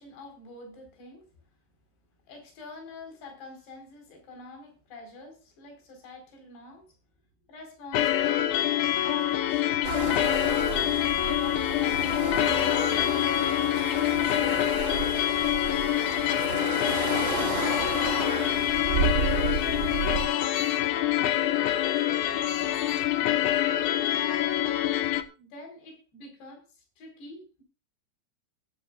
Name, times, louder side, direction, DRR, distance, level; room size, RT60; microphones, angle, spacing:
voice 1, 0.0-1.4 2.3-6.9 7.5-8.6 9.0-13.3 13.8-15.4 16.0-18.5 19.3-23.1 24.0-24.6 25.4-27.6, left 2 dB, 60° left, 3 dB, 6.6 m, -46 dB
sound 1, 7.9-25.2, left 12 dB, 75° left, 3.4 m, -26 dB
sound 2, 9.8-20.3, right 5 dB, 30° right, 2.5 m, -32 dB
20.5 x 11.0 x 2.5 m, 0.33 s
omnidirectional pair, 5.5 m